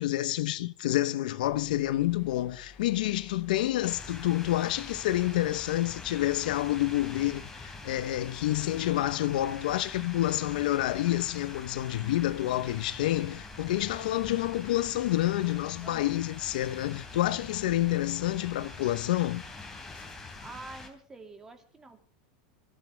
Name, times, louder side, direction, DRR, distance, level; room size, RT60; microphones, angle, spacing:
voice 1, 0.0-19.4, left 15 dB, 80° left, 1.0 m, -28 dB
sound 1, 1.4-20.1, left 4 dB, 30° left, 3.6 m, -56 dB
sound 2, 3.8-20.9, left 3 dB, 10° left, 3.3 m, -45 dB
voice 2, 13.2-14.3 15.8-16.3 20.4-22.1, right 3 dB, 15° right, 2.4 m, -49 dB
26.5 x 14.5 x 3.5 m
supercardioid pair, 150°, 4 cm